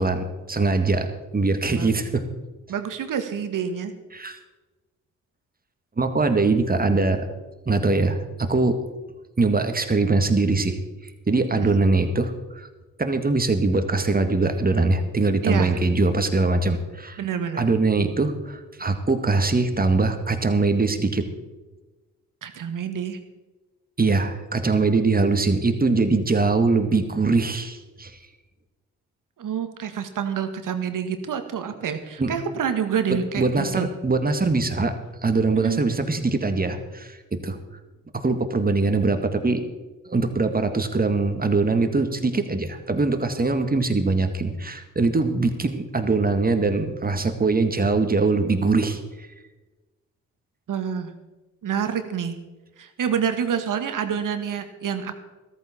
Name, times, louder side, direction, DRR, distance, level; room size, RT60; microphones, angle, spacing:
voice 1, 0.0-2.2 4.1-4.4 6.0-7.3 7.7-8.8 9.4-10.8 11.3-12.7 13.0-17.2 17.6-21.3 24.0-28.1 32.2-32.3 33.4-35.0 35.2-37.6 38.1-39.6 40.1-49.3, right 3 dB, 25° right, 7 dB, 1.9 m, -22 dB
voice 2, 2.7-3.9 11.5-11.8 15.4-15.8 17.2-17.6 22.4-23.2 29.4-33.9 35.5-35.8 50.7-51.1 51.6-52.4 52.8-55.1, right 7 dB, 55° right, 8 dB, 1.8 m, -27 dB
14.5 x 13.5 x 4.4 m, 1.2 s
hypercardioid pair, 50°, 38 cm